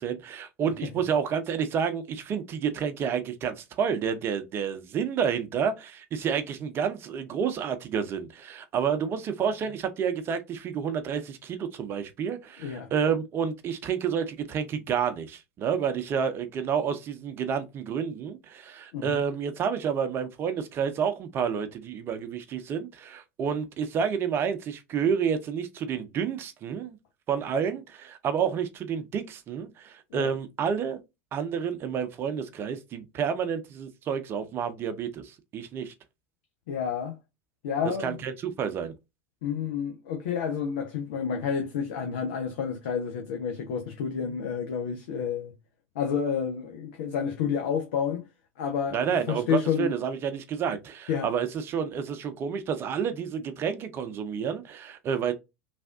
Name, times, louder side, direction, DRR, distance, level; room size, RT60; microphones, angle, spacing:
voice 1, 0.0-27.0 27.3-31.0 31.3-35.9 38.0-38.9 48.9-55.3, right 7 dB, 35° right, 0.7 m, -29 dB
voice 2, 12.6-12.9 18.9-19.2 30.1-30.3 36.7-37.2 37.6-38.2 39.4-45.5 45.9-48.3 48.6-49.9 51.1-51.3, left 7 dB, 65° left, 0.7 m, -30 dB
3.3 x 2.5 x 2.4 m
hypercardioid pair, 85°, 7 cm